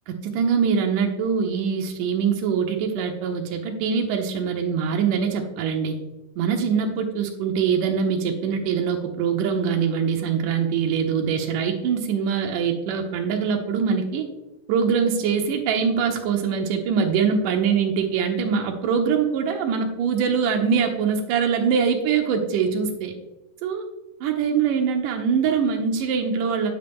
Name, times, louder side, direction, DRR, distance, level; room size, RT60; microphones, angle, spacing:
voice 1, 0.1-6.0 6.4-14.3 14.7-23.1 23.6-23.8 24.2-26.7, right 6 dB, 90° right, 3 dB, 1.8 m, -23 dB
9.5 x 8.0 x 3.5 m, 0.99 s
omnidirectional pair, 4.9 m